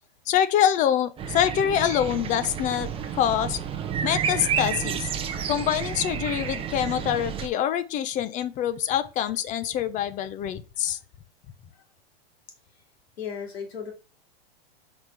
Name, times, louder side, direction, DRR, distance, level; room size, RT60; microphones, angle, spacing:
voice 1, 0.3-3.6 4.0-5.1 5.5-11.0, left 10 dB, 25° left, 0.5 m, -25 dB
sound 1, 1.2-7.5, right 7 dB, 20° right, 0.7 m, -30 dB
voice 2, 13.2-13.9, left 7 dB, 85° left, 2.4 m, -36 dB
4.8 x 4.2 x 4.6 m
hypercardioid pair, 130°, 30 cm